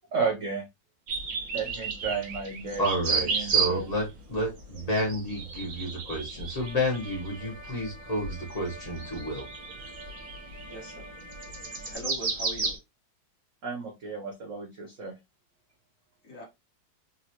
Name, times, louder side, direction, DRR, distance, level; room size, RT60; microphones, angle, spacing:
voice 1, 0.1-0.7 1.5-3.9 13.6-15.1, right 4 dB, 80° right, 0.6 m, -33 dB
sound 1, 1.1-4.0 4.4-12.8, right 5 dB, 55° right, 1.2 m, -33 dB
voice 2, 2.8-9.4, equal, 80° left, 0.3 m, -30 dB
sound 2, 6.6-11.9, right 1 dB, 25° right, 0.9 m, -47 dB
voice 3, 10.7-11.1 11.8-12.7 16.2-16.5, left 1 dB, 50° left, 1.2 m, -40 dB
3.9 x 2.1 x 2.7 m
omnidirectional pair, 2.1 m